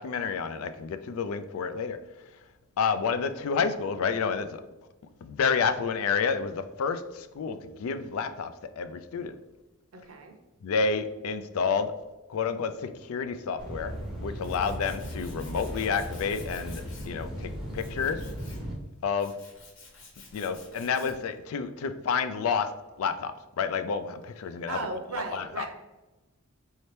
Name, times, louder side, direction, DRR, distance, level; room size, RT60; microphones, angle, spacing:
voice 1, 0.0-2.0 2.8-4.6 5.2-9.4 10.6-11.9 12.3-13.9 14.2-18.2 19.0-19.4 20.3-22.7 23.0-24.8 25.3-25.7, left 5 dB, 80° left, 11 dB, 0.3 m, -29 dB
voice 2, 9.9-10.4 24.7-25.7, right 3 dB, 80° right, 3 dB, 0.8 m, -36 dB
sound 1, 13.6-18.7, equal, ahead, 0.6 m, -37 dB
Tools, 13.9-21.3, left 3 dB, 55° left, 1.0 m, -52 dB
4.2 x 2.8 x 3.2 m, 1.1 s
head